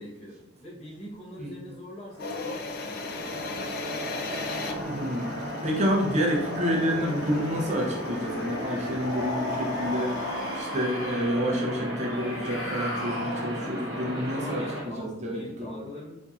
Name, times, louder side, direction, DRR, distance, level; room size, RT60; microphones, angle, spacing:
voice 1, 0.0-4.0 13.6-13.9 14.1-16.1, left 1 dB, 30° left, -4 dB, 0.8 m, -43 dB
sound 1, 2.1-14.8, equal, 70° right, 1.1 m, -36 dB
sound 2, 2.2-10.6, left 3 dB, 50° left, 0.3 m, -38 dB
voice 2, 4.8-15.8, equal, 35° right, -1 dB, 0.5 m, -29 dB
sound 3, 9.0-11.5 12.1-13.8, left 1 dB, 90° left, 0.8 m, -35 dB
4.1 x 2.6 x 2.3 m, 0.94 s
head